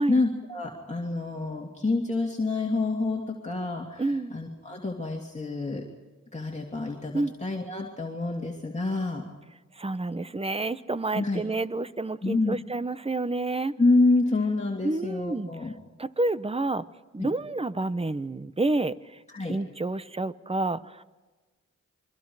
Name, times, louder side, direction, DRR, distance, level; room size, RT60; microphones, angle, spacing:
voice 1, 0.0-4.0 4.3-5.8 6.3-9.2 11.1-11.4 12.2-12.6 13.8-15.7 17.2-17.3 19.3-19.6, left 2 dB, 20° left, -1 dB, 2.9 m, -27 dB
voice 2, 4.0-4.3 7.1-7.3 9.8-13.7 14.8-15.5 16.0-16.8 17.1-19.0 19.5-21.0, right 2 dB, 20° right, 14 dB, 0.9 m, -29 dB
28.0 x 23.5 x 4.9 m, 1.2 s
cardioid pair, 65°, 31 cm